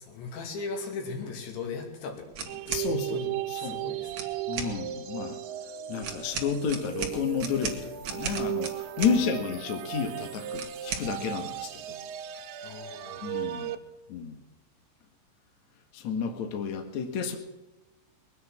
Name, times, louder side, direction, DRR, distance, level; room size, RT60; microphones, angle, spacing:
voice 1, 0.0-4.4 12.6-13.3, left 4 dB, 70° left, 2 dB, 4.6 m, -39 dB
sound 1, 2.3-2.9 4.1-4.7 6.0-9.2 10.5-11.1, right 6 dB, 55° right, 2.0 m, -35 dB
sound 2, 2.5-13.8, right 13 dB, 80° right, 3.1 m, -36 dB
voice 2, 2.7-3.2 3.5-3.8 4.5-5.4 5.9-12.0 13.2-13.7 14.1-14.4 15.9-17.4, left 6 dB, 55° left, 4 dB, 2.1 m, -31 dB
22.0 x 9.5 x 6.0 m, 1.0 s
omnidirectional pair, 5.4 m